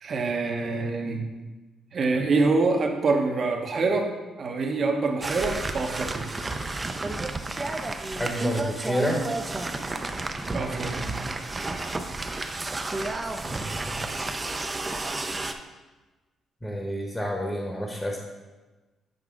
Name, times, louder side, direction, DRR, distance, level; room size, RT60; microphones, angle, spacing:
voice 1, 0.0-1.3 1.9-6.3 10.5-11.1, right 3 dB, 45° right, 3 dB, 0.9 m, -26 dB
sound 1, 5.2-15.5, right 2 dB, 20° right, 0.5 m, -31 dB
voice 2, 8.1-9.2 10.5-11.1 13.2-14.0 16.6-18.2, equal, 10° left, 0 dB, 1.0 m, -30 dB
7.9 x 4.8 x 3.7 m, 1.2 s
cardioid pair, 110°, 0 cm